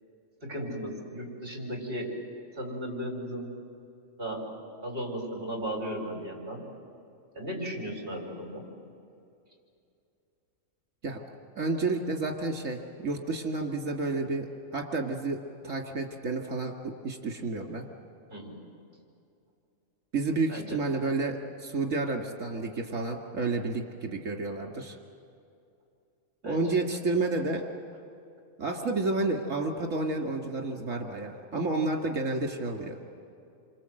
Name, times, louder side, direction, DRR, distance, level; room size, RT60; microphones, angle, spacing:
voice 1, 0.4-2.1 2.5-3.5 4.2-4.5 4.8-6.7 7.3-8.6 18.3-18.6 20.5-20.8 26.4-26.8, equal, 45° right, 1 dB, 5.2 m, -36 dB
voice 2, 11.6-17.9 20.1-25.0 26.4-27.6 28.6-33.0, right 3 dB, 75° right, 2 dB, 2.5 m, -30 dB
28.0 x 25.5 x 7.8 m, 2.6 s
omnidirectional pair, 1.4 m